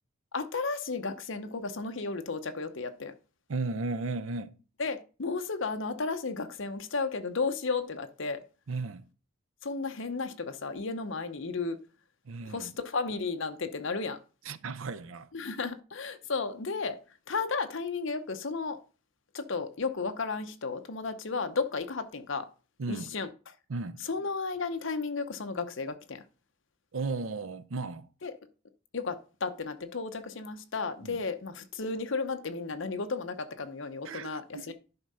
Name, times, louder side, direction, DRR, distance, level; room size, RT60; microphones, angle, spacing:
voice 1, 0.3-3.1 4.8-8.4 9.6-11.8 12.5-14.2 15.3-17.0 17.3-18.8 19.3-22.5 22.9-23.3 24.0-26.2 28.2-28.3 28.9-34.7, left 4 dB, 60° left, 0.8 m, -33 dB
voice 2, 3.5-4.6 8.7-9.0 12.2-12.7 14.4-15.3 22.8-23.1 23.7-24.0 26.9-28.1 31.0-31.2 34.0-34.7, right 3 dB, 70° right, 0.6 m, -35 dB
10.5 x 3.7 x 5.5 m
head